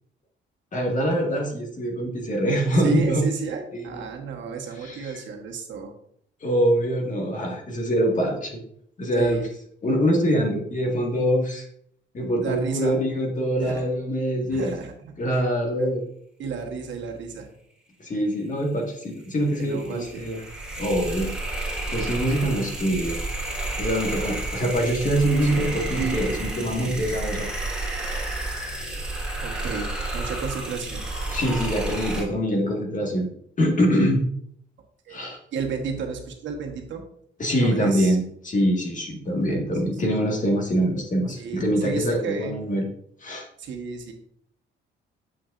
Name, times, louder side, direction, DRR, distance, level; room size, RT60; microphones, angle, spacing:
voice 1, 0.7-3.2 3.9-4.1 4.8-5.2 6.4-8.6 9.0-9.4 9.8-11.6 12.1-14.7 15.2-16.0 18.0-20.4 20.8-21.3 21.9-23.2 23.8-27.5 31.3-33.3 33.6-34.2 35.1-35.4 37.4-42.9 43.2-43.5, equal, 40° left, 0 dB, 1.8 m, -24 dB
voice 2, 2.8-5.9 9.2-9.5 12.4-13.0 13.6-13.8 14.5-15.4 15.8-15.9 16.4-17.5 19.6-20.3 25.4-26.3 29.4-31.0 35.1-35.2 35.5-37.0 37.6-38.2 41.4-42.7 43.6-44.1, right 5 dB, 70° right, 2 dB, 1.3 m, -32 dB
sound 1, 19.1-32.2, right 2 dB, 5° right, 2.8 m, -31 dB
7.2 x 6.0 x 2.5 m, 0.68 s
cardioid pair, 90°, 20 cm